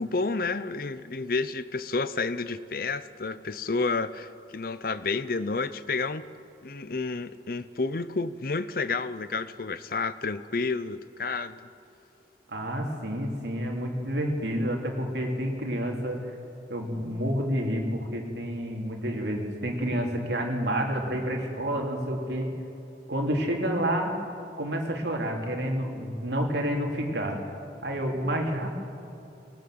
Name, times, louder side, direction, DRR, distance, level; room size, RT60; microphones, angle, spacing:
voice 1, 0.0-6.3 6.6-11.6, left 3 dB, 55° left, 14 dB, 0.7 m, -30 dB
voice 2, 12.5-16.3 16.7-22.5 23.1-24.2 24.6-27.5 27.8-28.7, equal, 75° right, 1 dB, 3.1 m, -29 dB
21.0 x 18.5 x 7.8 m, 2.8 s
head